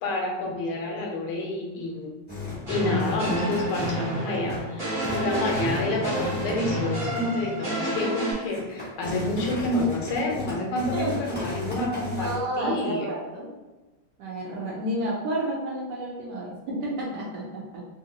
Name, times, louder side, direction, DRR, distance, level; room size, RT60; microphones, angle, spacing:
voice 1, 0.0-2.1 2.7-13.1, left 2 dB, 80° left, 0 dB, 1.5 m, -29 dB
sound 1, 2.3-2.7 3.0-4.2 4.5-4.7 5.0-7.3 7.7-7.8 8.2-12.4, left 3 dB, 10° right, 0.5 m, -35 dB
sound 2, 2.7-8.3, right 1 dB, 35° right, 0.9 m, -29 dB
voice 2, 12.2-13.5 14.2-17.9, right 1 dB, 75° right, -3 dB, 0.9 m, -31 dB
3.5 x 2.6 x 2.7 m, 1.2 s
omnidirectional pair, 2.4 m